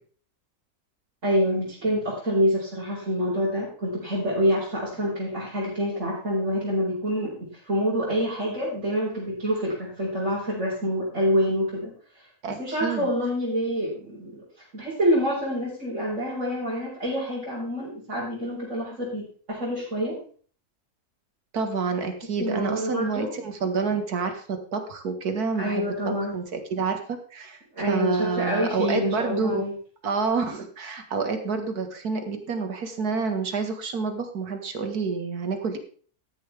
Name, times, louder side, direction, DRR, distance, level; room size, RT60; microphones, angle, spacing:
voice 1, 1.2-14.4 14.7-20.2 22.4-23.3 25.6-26.3 27.7-29.7, equal, 50° right, -9 dB, 5.1 m, -27 dB
voice 2, 12.4-13.1 21.5-27.0 27.3-27.6 27.9-29.6 30.0-35.8, right 4 dB, 75° right, 6 dB, 2.2 m, -28 dB
13.5 x 10.5 x 3.5 m, 0.43 s
omnidirectional pair, 1.6 m